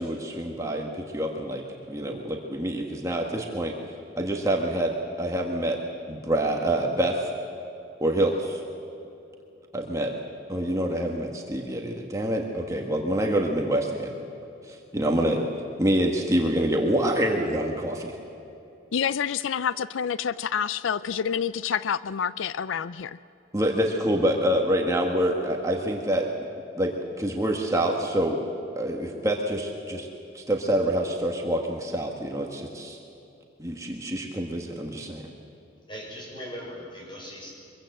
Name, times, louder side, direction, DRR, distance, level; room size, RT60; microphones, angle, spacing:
voice 1, 0.0-1.6 1.9-3.7 4.2-5.8 6.1-7.3 8.0-8.6 9.7-10.1 10.5-14.2 14.7-15.4 15.8-18.2 23.5-26.5 26.8-28.4 28.8-30.1 30.3-33.0 33.6-35.2, right 1 dB, 15° right, 1 dB, 1.5 m, -26 dB
voice 2, 18.9-23.2, left 7 dB, 85° left, 17 dB, 0.4 m, -28 dB
voice 3, 35.9-37.5, equal, 25° left, -1 dB, 6.2 m, -39 dB
24.0 x 22.5 x 7.9 m, 2.8 s
head